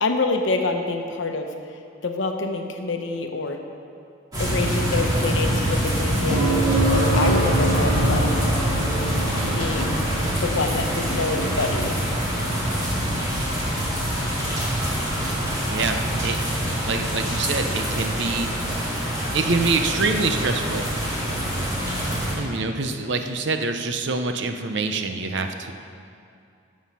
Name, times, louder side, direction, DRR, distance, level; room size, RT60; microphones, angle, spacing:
voice 1, 0.0-1.5 2.0-3.6 4.4-8.3 9.6-10.1 10.4-12.0, left 3 dB, 65° left, 4 dB, 0.9 m, -26 dB
sound 1, 4.3-22.3, equal, 20° right, 2.2 m, -25 dB
sound 2, 6.3-20.2 22.4-22.5, right 2 dB, 75° right, 1.6 m, -30 dB
voice 2, 15.7-16.4 16.9-18.5 19.3-20.9 22.3-25.7, right 3 dB, 60° right, 6 dB, 0.7 m, -25 dB
13.5 x 6.3 x 5.6 m, 2.5 s
head